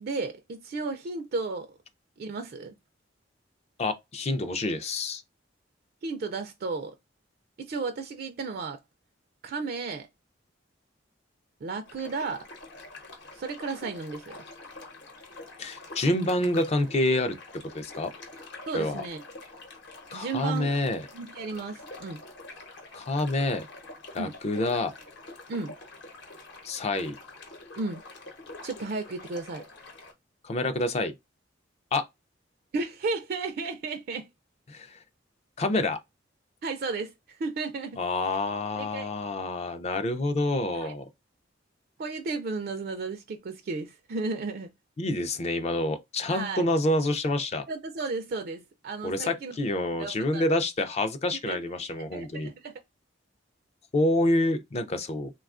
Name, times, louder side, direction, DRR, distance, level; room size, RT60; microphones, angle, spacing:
voice 1, 0.0-1.7 2.2-2.7 6.0-6.9 7.6-8.8 9.4-10.1 11.6-12.5 13.3-14.4 18.7-19.2 20.1-20.7 21.1-22.2 24.2-24.3 25.5-25.7 27.8-28.0 28.6-29.6 32.7-34.3 36.6-38.0 38.8-39.1 40.8-40.9 42.0-44.7 46.3-46.7 47.7-49.5 50.0-50.4 51.5-52.8, right 3 dB, 55° right, 0.4 m, -34 dB
voice 2, 3.8-5.2 15.6-17.4 17.7-18.1 18.7-19.0 20.1-21.0 22.9-23.7 24.1-24.9 26.7-27.1 30.4-31.1 31.9-32.1 34.7-35.0 35.6-36.0 38.0-41.1 45.0-47.7 49.0-52.5 53.9-55.3, left 2 dB, 35° left, 0.4 m, -27 dB
sound 1, 11.8-30.1, left 2 dB, 65° left, 0.9 m, -46 dB
3.3 x 2.3 x 2.4 m
head